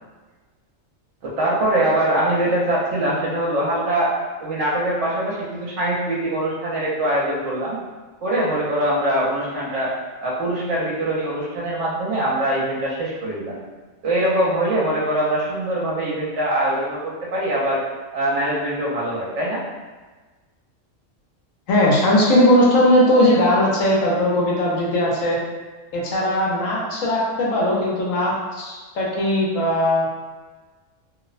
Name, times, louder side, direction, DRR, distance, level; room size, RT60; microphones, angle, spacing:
voice 1, 1.2-4.1 4.4-7.8 8.2-9.9 10.2-13.5 14.0-17.8 18.1-19.6, right 1 dB, 70° right, -5 dB, 1.0 m, -23 dB
voice 2, 21.7-25.3 25.9-30.1, left 1 dB, 85° left, -4 dB, 1.0 m, -18 dB
2.6 x 2.0 x 2.4 m, 1.3 s
omnidirectional pair, 1.3 m